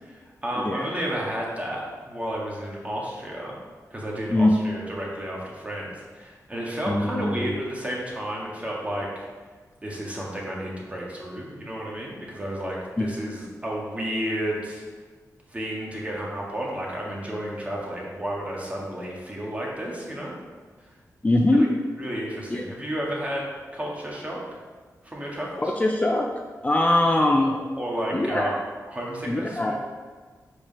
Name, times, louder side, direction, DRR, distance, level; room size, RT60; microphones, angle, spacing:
voice 1, 0.0-3.6 3.9-9.3 9.8-14.9 15.5-20.3 20.8-20.9 21.5-21.7 22.0-24.4 25.0-25.7 27.5-28.5 28.9-29.8, right 1 dB, 20° right, -4 dB, 1.9 m, -32 dB
voice 2, 0.6-0.9 4.3-4.6 6.9-7.5 13.0-13.1 21.2-21.7 22.5-22.6 25.6-26.3 26.6-27.5 28.1-28.5 29.3-29.7, left 1 dB, 20° left, 1 dB, 0.5 m, -22 dB
5.4 x 5.1 x 5.4 m, 1.4 s
wide cardioid pair, 90°, 6 cm